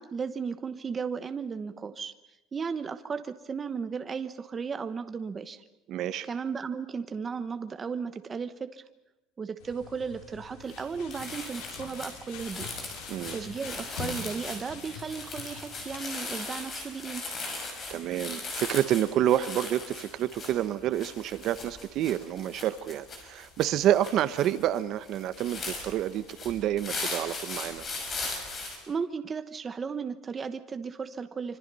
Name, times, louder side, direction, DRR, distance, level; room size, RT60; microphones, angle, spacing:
voice 1, 0.0-2.1 2.5-5.6 6.2-8.8 9.4-12.7 13.3-17.2 28.9-31.6, right 5 dB, 15° right, 9 dB, 1.0 m, -35 dB
voice 2, 5.9-6.3 13.1-13.4 17.9-27.9, right 11 dB, 40° right, 13 dB, 1.0 m, -28 dB
sound 1, 9.6-16.0, left 6 dB, 80° left, 6.1 m, -44 dB
sound 2, 10.7-10.8 11.1-28.8, left 3 dB, 25° left, 5.8 m, -39 dB
26.0 x 25.5 x 5.5 m, 0.97 s
cardioid pair, 180°, 0 cm